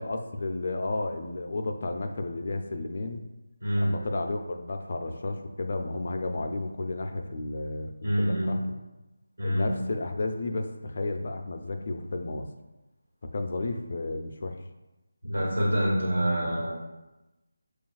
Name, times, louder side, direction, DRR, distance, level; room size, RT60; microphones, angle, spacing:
voice 1, 0.0-3.3 3.8-8.6 9.4-12.5 13.2-14.6, left 2 dB, 50° left, 5 dB, 0.4 m, -32 dB
voice 2, 3.6-4.0 8.0-8.6 9.4-9.7 15.2-16.7, equal, 90° right, -5 dB, 1.5 m, -26 dB
6.7 x 2.3 x 2.4 m, 1.0 s
figure-of-eight pair, 160°, 0 cm